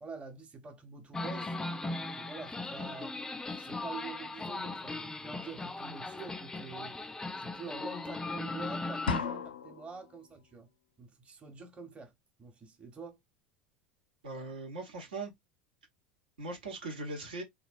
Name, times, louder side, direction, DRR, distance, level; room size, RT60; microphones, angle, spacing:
voice 1, 0.0-1.6 2.0-3.2 3.6-7.0 7.4-10.7 11.0-12.1 12.4-13.2, right 4 dB, 25° right, 1.0 m, -46 dB
sound 1, 1.1-9.2, left 2 dB, 10° left, 0.3 m, -38 dB
sound 2, 9.1-10.1, left 6 dB, 90° left, 0.5 m, -34 dB
voice 2, 14.2-15.3 16.4-17.4, right 2 dB, 80° right, 1.0 m, -40 dB
3.2 x 2.3 x 2.4 m
hypercardioid pair, 80°, 5 cm